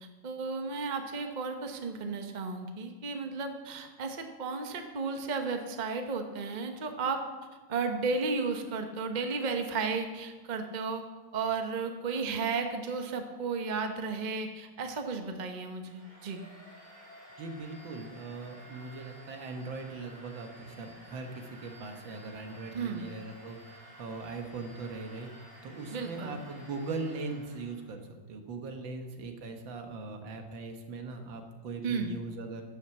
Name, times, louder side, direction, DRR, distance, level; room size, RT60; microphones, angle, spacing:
voice 1, 0.0-7.2 7.7-11.0 11.3-16.4 22.7-23.0 25.9-26.4 31.8-32.1, right 4 dB, 30° right, 5 dB, 0.9 m, -33 dB
Domestic sounds home sounds, 15.8-27.9, equal, 50° right, 5.2 m, -53 dB
voice 2, 17.4-25.3 25.6-28.0 28.3-32.6, right 3 dB, 80° right, 5 dB, 2.0 m, -40 dB
12.5 x 5.9 x 8.0 m, 1.3 s
omnidirectional pair, 2.1 m